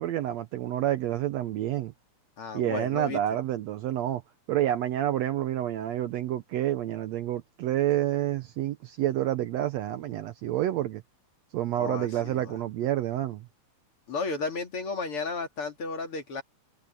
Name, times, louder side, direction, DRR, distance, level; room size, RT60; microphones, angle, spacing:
voice 1, 0.0-1.9 2.5-4.2 4.5-11.0 11.5-13.5, right 12 dB, 70° right, 1.7 m, -28 dB
voice 2, 2.4-3.2 11.8-12.6 14.1-16.4, left 4 dB, 45° left, 3.3 m, -33 dB
omnidirectional pair, 3.6 m